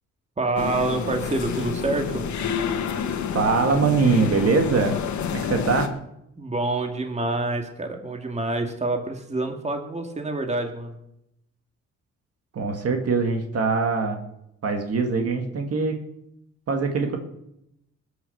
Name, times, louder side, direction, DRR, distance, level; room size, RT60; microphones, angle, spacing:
voice 1, 0.4-2.3 5.5-5.6 6.4-11.0, right 2 dB, 20° right, 4 dB, 2.1 m, -27 dB
sound 1, 0.6-5.9, left 7 dB, 70° left, 1.7 m, -29 dB
voice 2, 3.3-5.0 5.3-5.9 12.5-14.2 14.6-16.0 16.7-17.2, right 4 dB, 50° right, 4 dB, 2.1 m, -22 dB
20.0 x 6.8 x 7.1 m, 0.83 s
cardioid pair, 90°, 30 cm